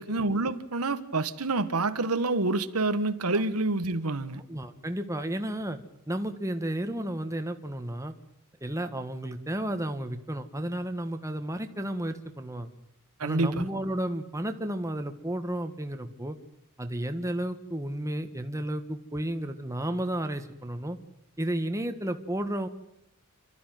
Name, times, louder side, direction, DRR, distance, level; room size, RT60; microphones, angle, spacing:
voice 1, 0.0-4.4 13.2-13.7, right 2 dB, 90° right, 1.4 m, -27 dB
voice 2, 4.5-5.8 6.1-8.1 8.6-12.7 13.2-16.4 16.8-21.0 21.4-22.7, right 1 dB, 15° right, 1.5 m, -32 dB
28.5 x 13.0 x 9.2 m
head